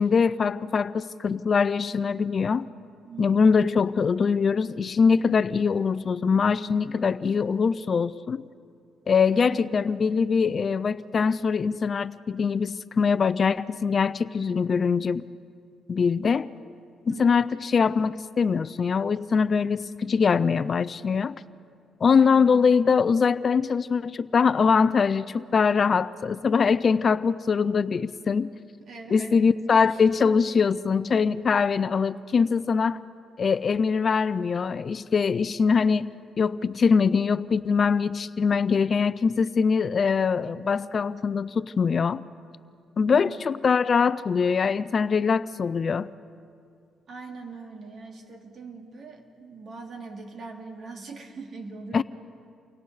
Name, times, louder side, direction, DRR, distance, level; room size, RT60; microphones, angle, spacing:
voice 1, 0.0-2.7 3.2-8.4 9.1-15.2 15.9-16.5 17.1-21.4 22.0-28.5 29.1-33.0 33.4-42.2 43.0-46.1 51.9-52.0, left 5 dB, 45° left, 16 dB, 0.5 m, -23 dB
voice 2, 3.0-3.6 9.4-9.6 17.1-17.2 22.2-22.7 28.8-29.4 29.9-30.0 43.1-43.4 47.1-52.0, right 4 dB, 55° right, 2 dB, 2.7 m, -41 dB
30.0 x 24.0 x 4.1 m, 2.4 s
cardioid pair, 90°, 0 cm